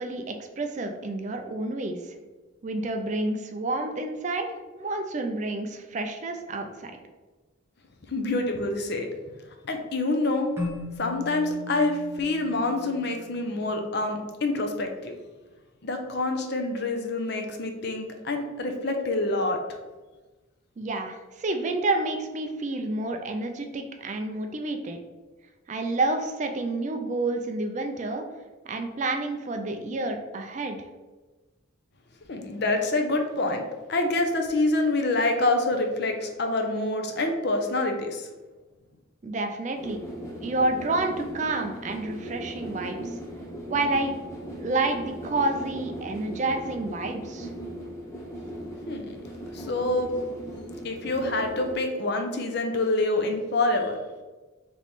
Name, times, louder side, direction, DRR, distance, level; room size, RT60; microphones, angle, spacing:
voice 1, 0.0-2.0 2.6-7.0 20.8-25.0 25.7-28.2 28.7-30.9 39.2-40.0 40.4-43.1 43.7-44.1 44.6-47.5, right 2 dB, 35° right, 5 dB, 0.3 m, -29 dB
voice 2, 8.1-9.1 9.6-10.5 11.0-15.1 15.8-19.6 32.3-33.6 33.9-38.3 48.9-49.2 49.5-50.1 50.8-54.0, left 2 dB, 50° left, 4 dB, 0.6 m, -26 dB
Keyboard (musical), 10.6-13.8, left 3 dB, 10° right, 1.0 m, -38 dB
sound 1, 39.7-51.7, equal, 15° left, 0.7 m, -38 dB
3.5 x 3.1 x 4.0 m, 1.2 s
head